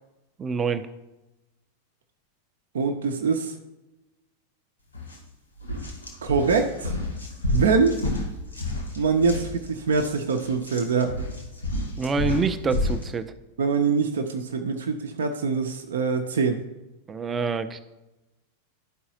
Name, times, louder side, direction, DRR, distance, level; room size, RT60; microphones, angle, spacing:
voice 1, 0.4-0.9 12.0-13.3 17.1-17.8, right 4 dB, 20° right, 11 dB, 0.5 m, -26 dB
voice 2, 2.7-3.6 6.2-6.9 7.5-8.0 9.0-11.2 13.6-16.6, right 5 dB, 65° right, 4 dB, 0.6 m, -24 dB
sound 1, 4.9-5.2 5.6-13.1, left 1 dB, 80° left, 1.3 m, -30 dB
11.5 x 4.7 x 2.8 m, 1.0 s
figure-of-eight pair, 90°, 0 cm